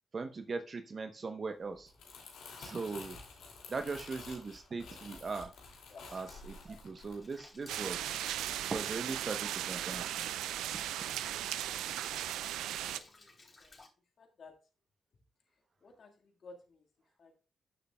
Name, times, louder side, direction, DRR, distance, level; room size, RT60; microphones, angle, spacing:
voice 1, 0.1-1.9 2.6-3.2 3.7-5.5 6.1-8.1 8.7-10.3, right 4 dB, 50° right, 7 dB, 0.8 m, -39 dB
Crumpling crinkling, 1.7-8.1 8.5-8.7, left 4 dB, 75° left, 2.5 m, -51 dB
Rain, 7.2-13.9, left 2 dB, 40° left, 3.2 m, -58 dB
sound 1, 7.7-13.0, right 12 dB, 80° right, 0.4 m, -37 dB
voice 2, 13.0-13.8 14.2-14.5 15.8-16.9 17.2-17.3, left 3 dB, 60° left, 2 dB, 1.7 m, -55 dB
13.0 x 6.8 x 2.3 m, 0.34 s
hypercardioid pair, 40°, 0 cm